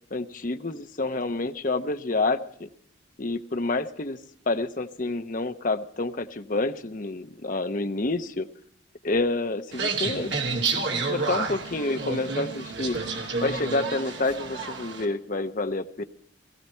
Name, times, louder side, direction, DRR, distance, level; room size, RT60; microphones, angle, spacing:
voice 1, 0.1-2.7 3.2-4.2 4.5-8.5 9.0-10.4 10.9-13.0 13.4-16.0, left 2 dB, 40° left, 8 dB, 0.9 m, -28 dB
sound 1, 9.7-15.0, right 4 dB, 65° right, 2.5 m, -30 dB
18.0 x 15.5 x 4.4 m, 0.64 s
head